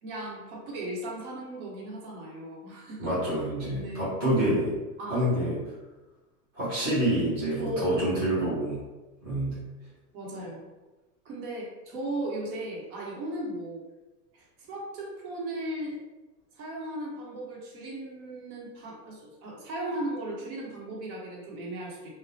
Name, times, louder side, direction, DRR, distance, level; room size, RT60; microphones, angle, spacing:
voice 1, 0.0-3.1 3.7-4.1 5.0-5.2 7.6-7.9 10.1-10.6 11.2-13.8 14.3-16.0 16.6-22.1, right 1 dB, 60° right, -3 dB, 1.0 m, -37 dB
voice 2, 3.0-4.7 5.1-5.7 6.5-8.8 9.2-9.6, right 1 dB, 10° right, -11 dB, 0.3 m, -27 dB
2.3 x 2.0 x 2.6 m, 1.1 s
hypercardioid pair, 130°, 49 cm